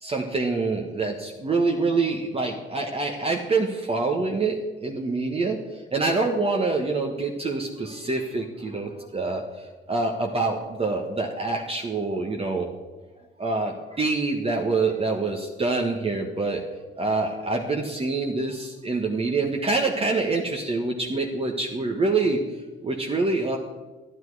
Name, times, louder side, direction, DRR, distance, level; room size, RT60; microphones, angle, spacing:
voice 1, 0.0-12.7 13.4-16.6 16.9-22.4 22.8-23.6, right 3 dB, 30° right, 1 dB, 1.3 m, -26 dB
11.5 x 10.0 x 4.8 m, 1.2 s
cardioid pair, 95°, 21 cm